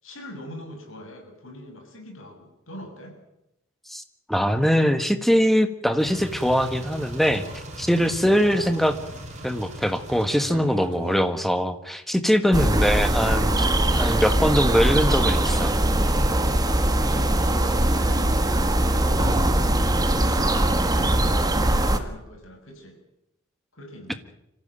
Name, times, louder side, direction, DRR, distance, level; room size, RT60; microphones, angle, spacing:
voice 1, 0.0-3.2 8.3-8.8 16.7-23.0 23.7-24.2, left 1 dB, 60° left, 4 dB, 6.2 m, -42 dB
voice 2, 4.3-7.4 7.8-8.9 9.4-13.7 14.0-15.8, equal, ahead, 9 dB, 1.4 m, -22 dB
sound 1, 6.0-11.2, right 1 dB, 30° right, 5.4 m, -38 dB
sound 2, 12.5-22.0, right 1 dB, 15° right, 1.7 m, -21 dB
25.5 x 15.5 x 8.9 m, 0.86 s
head